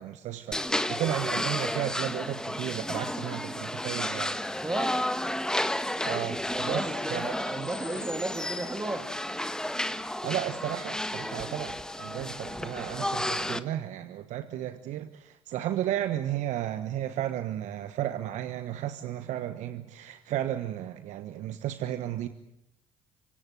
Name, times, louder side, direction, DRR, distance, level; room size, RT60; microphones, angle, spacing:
voice 1, 0.0-4.3 6.0-6.8 7.1-7.7 10.2-22.3, right 12 dB, 65° right, 11 dB, 1.3 m, -33 dB
sound 1, 0.5-13.6, left 1 dB, 5° left, 1.6 m, -32 dB
voice 2, 4.6-5.0 6.5-9.1, right 2 dB, 15° right, 6 dB, 2.6 m, -34 dB
25.5 x 25.0 x 7.7 m, 0.80 s
hypercardioid pair, 55°, 13 cm